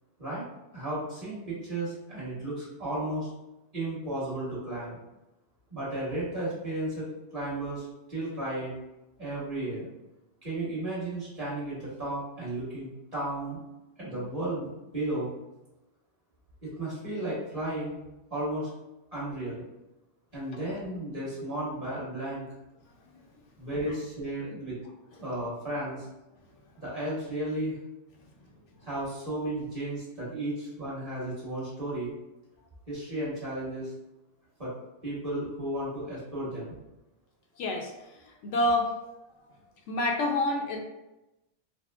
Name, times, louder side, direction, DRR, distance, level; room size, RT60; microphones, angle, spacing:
voice 1, 0.7-3.3 3.7-5.0 5.7-7.1 7.3-8.7 9.2-9.9 10.4-13.6 14.0-15.3 16.6-18.0 18.3-18.7 19.1-19.6 20.3-22.5 23.6-24.8 25.2-26.0 26.8-27.8 28.8-32.1 32.9-33.9 34.6-34.7 35.0-36.8, right 1 dB, 30° right, -9 dB, 1.4 m, -34 dB
voice 2, 37.6-37.9 38.4-38.9 39.9-40.8, left 1 dB, 80° left, 2 dB, 0.9 m, -27 dB
4.1 x 2.0 x 2.3 m, 0.96 s
omnidirectional pair, 1.2 m